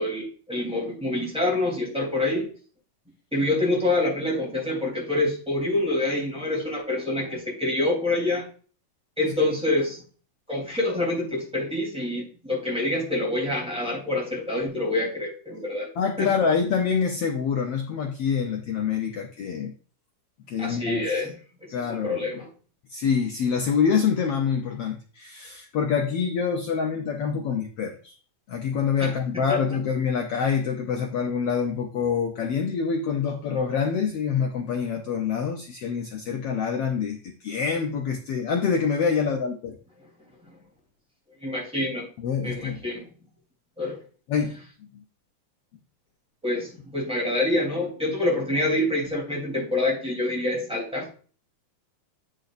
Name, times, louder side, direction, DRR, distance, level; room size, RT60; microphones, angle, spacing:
voice 1, 0.0-2.4 3.3-8.4 9.2-10.0 10.5-15.9 16.2-16.3 20.6-21.3 21.6-22.5 29.0-29.1 29.5-29.6 41.4-42.1 42.4-43.1 43.8-44.0 46.4-51.1, left 2 dB, ahead, -3 dB, 3.1 m, -26 dB
voice 2, 16.0-19.7 20.5-21.1 21.7-22.3 22.9-28.1 28.5-39.8 42.2-42.8 44.3-44.5, left 6 dB, 80° left, 2 dB, 1.4 m, -26 dB
8.7 x 6.4 x 2.6 m, 0.40 s
omnidirectional pair, 3.6 m